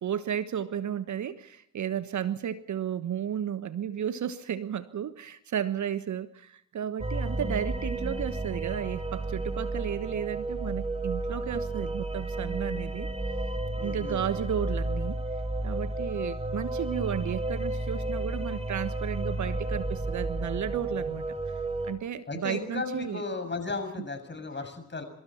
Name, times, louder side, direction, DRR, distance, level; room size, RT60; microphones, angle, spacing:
voice 1, 0.0-13.1 13.8-15.2 15.6-21.5 21.8-23.2, right 9 dB, 45° right, 13 dB, 1.3 m, -33 dB
sound 1, 7.0-21.9, right 2 dB, 15° right, 4.2 m, -32 dB
voice 2, 13.8-14.3 22.3-25.0, left 3 dB, 25° left, 8 dB, 6.9 m, -35 dB
26.0 x 25.0 x 4.4 m, 0.74 s
figure-of-eight pair, 40°, 40 cm